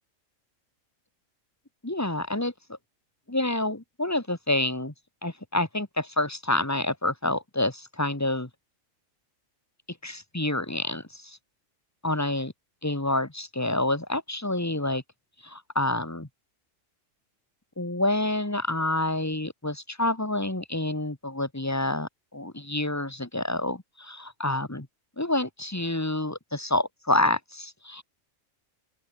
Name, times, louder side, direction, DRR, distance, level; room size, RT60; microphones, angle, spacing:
voice 1, 1.8-2.8 3.3-4.9 5.2-8.5 10.0-11.4 12.0-12.5 12.8-15.0 15.4-16.3 17.8-24.9 25.2-28.0, left 1 dB, 10° left, 1.9 m, -28 dB
open air
omnidirectional pair, 1.4 m